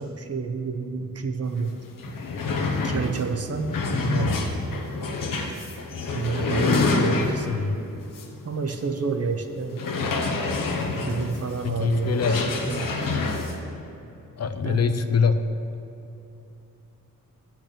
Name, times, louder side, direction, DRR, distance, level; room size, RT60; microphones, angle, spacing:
voice 1, 0.0-1.7 2.8-3.7 4.0-4.5 6.1-7.5 8.4-9.7 11.1-12.8 14.6-14.8, right 4 dB, 50° right, 6 dB, 0.8 m, -29 dB
sound 1, 1.6-1.7 1.9-7.6 8.1-8.3 8.7-8.8 9.7-13.6, left 3 dB, 80° left, 1.2 m, -27 dB
voice 2, 7.5-7.8 11.6-12.4 14.4-15.4, left 5 dB, 50° left, 8 dB, 0.6 m, -23 dB
10.5 x 5.9 x 8.7 m, 2.9 s
wide cardioid pair, 160°, 33 cm